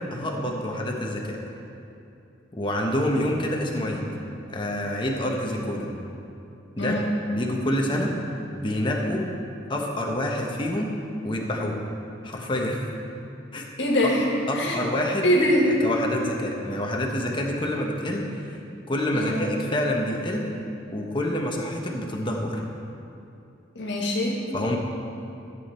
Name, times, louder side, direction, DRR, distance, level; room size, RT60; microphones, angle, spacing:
voice 1, 0.0-1.4 2.5-4.1 4.5-5.9 6.7-7.0 7.3-8.1 8.5-9.2 9.7-10.9 11.2-11.8 12.2-12.8 13.5-13.6 14.0-14.1 14.5-15.3 15.6-18.6 18.9-20.5 20.9-22.6 24.5-24.8, left 1 dB, 25° left, 0 dB, 1.1 m, -27 dB
voice 2, 13.8-14.2 14.5-14.8 15.2-15.7 19.1-19.4 23.8-24.4, equal, 65° left, -1 dB, 1.9 m, -23 dB
14.5 x 8.0 x 4.4 m, 2.7 s
head